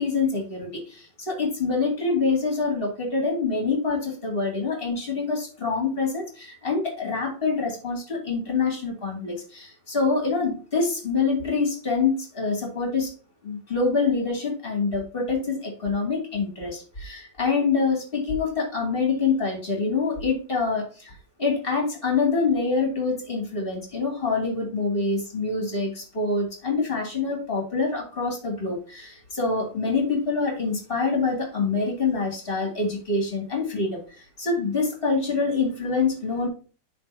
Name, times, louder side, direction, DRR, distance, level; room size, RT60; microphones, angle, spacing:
voice 1, 0.0-13.1 13.4-36.5, left 4 dB, 30° left, 0 dB, 2.5 m, -26 dB
10.5 x 4.0 x 2.8 m, 0.36 s
omnidirectional pair, 1.9 m